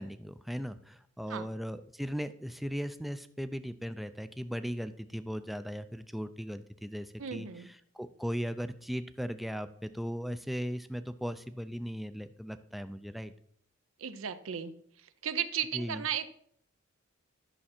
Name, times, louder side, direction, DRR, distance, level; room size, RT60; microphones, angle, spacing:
voice 1, 0.0-13.3 15.7-16.0, equal, ahead, 11 dB, 0.4 m, -38 dB
voice 2, 7.2-7.7 14.0-14.7 15.2-16.3, right 8 dB, 70° right, 12 dB, 0.6 m, -35 dB
11.0 x 6.2 x 4.3 m, 0.64 s
head